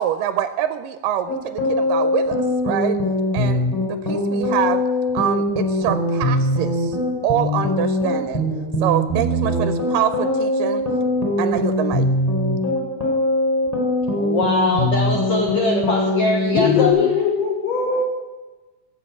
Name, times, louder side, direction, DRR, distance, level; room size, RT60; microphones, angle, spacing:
voice 1, 0.0-2.4 2.6-3.0 3.3-4.8 5.1-7.0 7.2-8.4 8.8-10.8 11.4-12.1, right 11 dB, 85° right, 11 dB, 2.3 m, -25 dB
sound 1, 1.3-16.9, left 1 dB, 5° left, 4.1 m, -21 dB
voice 2, 14.1-17.1, left 2 dB, 55° left, 0 dB, 2.1 m, -22 dB
voice 3, 16.5-18.0, left 6 dB, 70° left, 1 dB, 4.0 m, -20 dB
18.0 x 7.4 x 8.5 m, 1.2 s
omnidirectional pair, 3.9 m